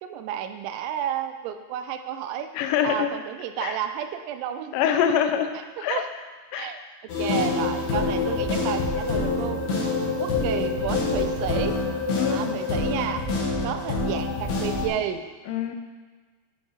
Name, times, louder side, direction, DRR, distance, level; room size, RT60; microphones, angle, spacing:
voice 1, 0.0-2.5 2.8-4.8 5.5-6.1 6.5-6.8 7.2-9.7 10.2-11.8 12.3-13.3 13.6-15.2, right 9 dB, 85° right, 7 dB, 2.8 m, -31 dB
voice 2, 2.6-3.1 3.6-3.8 4.7-5.5 5.8-6.0 6.5-6.7 12.2-12.6 15.5-15.7, left 9 dB, 80° left, 6 dB, 2.7 m, -24 dB
sound 1, 7.1-14.9, left 3 dB, 60° left, 2.0 m, -26 dB
8.0 x 5.8 x 4.3 m, 1.4 s
omnidirectional pair, 5.3 m